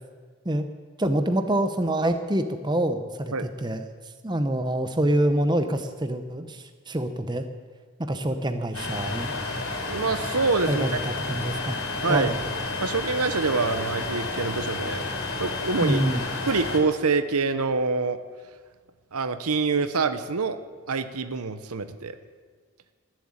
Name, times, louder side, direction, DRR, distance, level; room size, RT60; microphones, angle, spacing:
voice 1, 1.0-3.8 4.2-7.4 8.0-9.3 10.7-11.8 12.1-12.4 15.8-16.2, right 1 dB, 20° right, 8 dB, 0.8 m, -26 dB
sound 1, 8.7-16.8, left 3 dB, 70° left, 3.6 m, -31 dB
voice 2, 9.9-10.8 12.0-12.3 12.8-15.0 15.4-16.0 16.5-18.2 19.1-20.6 20.9-22.2, right 4 dB, 85° right, 11 dB, 0.9 m, -25 dB
19.5 x 7.6 x 8.8 m, 1.5 s
head